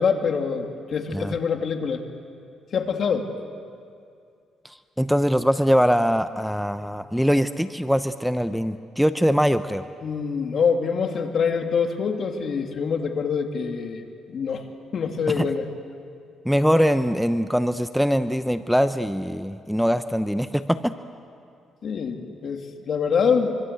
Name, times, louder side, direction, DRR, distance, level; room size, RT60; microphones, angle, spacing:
voice 1, 0.0-2.0 2.7-3.3 10.0-14.0 14.3-14.7 14.9-15.6 21.8-23.6, left 6 dB, 55° left, 4 dB, 2.6 m, -25 dB
voice 2, 4.6-9.8 15.3-15.5 16.4-20.9, equal, ahead, 10 dB, 0.8 m, -22 dB
25.5 x 25.0 x 8.2 m, 2.4 s
cardioid pair, 90°, 0 cm